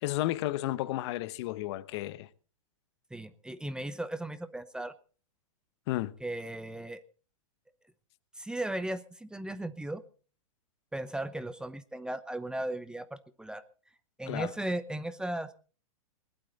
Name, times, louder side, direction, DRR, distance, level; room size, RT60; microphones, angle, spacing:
voice 1, 0.0-2.3 5.9-6.1 14.3-14.5, left 16 dB, 50° left, 1.0 m, -32 dB
voice 2, 3.1-4.9 6.2-7.0 8.4-10.0 10.9-13.6 14.2-15.5, right 1 dB, 5° right, 0.8 m, -36 dB
20.5 x 12.0 x 4.1 m
hypercardioid pair, 130°, 18 cm